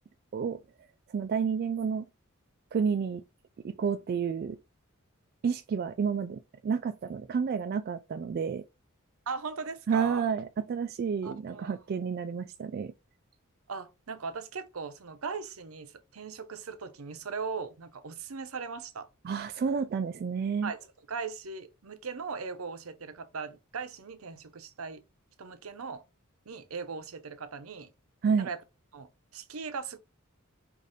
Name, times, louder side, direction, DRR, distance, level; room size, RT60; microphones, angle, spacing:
voice 1, 1.1-2.0 2.7-3.2 3.6-4.6 5.4-8.6 9.9-12.9 19.2-20.7 28.2-28.5, right 6 dB, 45° right, 0.3 m, -30 dB
voice 2, 9.3-10.3 11.2-11.8 13.7-19.1 20.6-20.8 21.1-25.0 25.4-26.0 26.5-27.9 28.4-28.6 28.9-30.0, right 5 dB, 75° right, 0.7 m, -39 dB
4.9 x 2.5 x 4.0 m
head